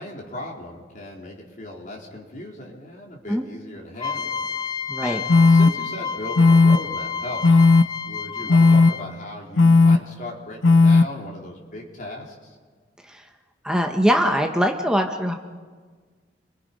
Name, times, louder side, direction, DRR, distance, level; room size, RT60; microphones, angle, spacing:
voice 1, 0.0-4.7 5.0-7.6 8.1-12.6, left 1 dB, 45° left, -1 dB, 4.1 m, -37 dB
sound 1, 4.0-9.2, left 6 dB, 20° left, 0.8 m, -30 dB
voice 2, 4.9-5.2 13.0-13.2 13.6-15.4, equal, 5° right, 3 dB, 1.2 m, -22 dB
sound 2, 5.3-5.7 6.4-6.8 7.4-7.8 8.5-8.9 9.6-10.0 10.6-11.0, left 3 dB, 90° left, 0.7 m, -13 dB
30.0 x 23.0 x 5.5 m, 1.5 s
head